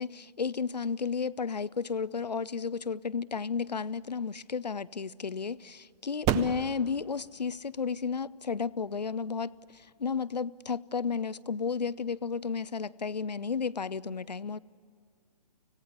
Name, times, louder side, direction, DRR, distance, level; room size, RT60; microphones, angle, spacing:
voice 1, 0.0-14.6, left 5 dB, 80° left, 0.6 m, -33 dB
sound 1, 3.9-10.9, right 10 dB, 15° right, 0.5 m, -38 dB
25.0 x 17.5 x 9.6 m
figure-of-eight pair, 125°, 21 cm